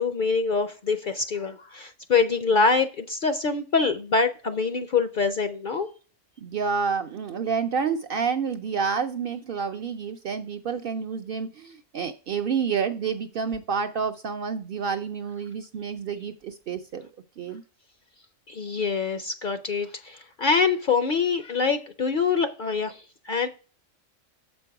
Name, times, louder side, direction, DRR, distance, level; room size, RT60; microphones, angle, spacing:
voice 1, 0.0-5.9 18.5-23.5, left 4 dB, 55° left, 9 dB, 0.6 m, -25 dB
voice 2, 6.4-17.1 17.4-17.6, right 6 dB, 60° right, 7 dB, 0.6 m, -29 dB
7.4 x 5.3 x 4.7 m, 0.37 s
omnidirectional pair, 1.3 m